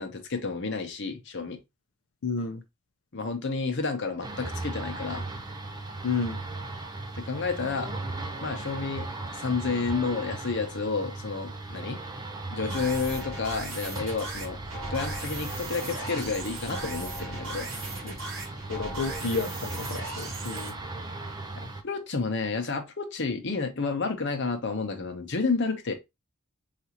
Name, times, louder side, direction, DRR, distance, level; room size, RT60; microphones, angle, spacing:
voice 1, 0.0-1.6 3.1-5.3 7.2-7.9 8.4-9.1 9.3-12.0 12.5-14.6 14.9-17.7 21.6-25.9, left 4 dB, 60° left, 0.9 m, -30 dB
voice 2, 2.2-2.6 6.0-6.4 18.0-18.1 18.7-20.7, left 4 dB, 85° left, 0.5 m, -31 dB
sound 1, 4.2-21.8, right 2 dB, 20° right, 0.6 m, -37 dB
sound 2, 12.7-20.7, right 2 dB, 70° right, 2.2 m, -38 dB
4.9 x 2.7 x 2.8 m
head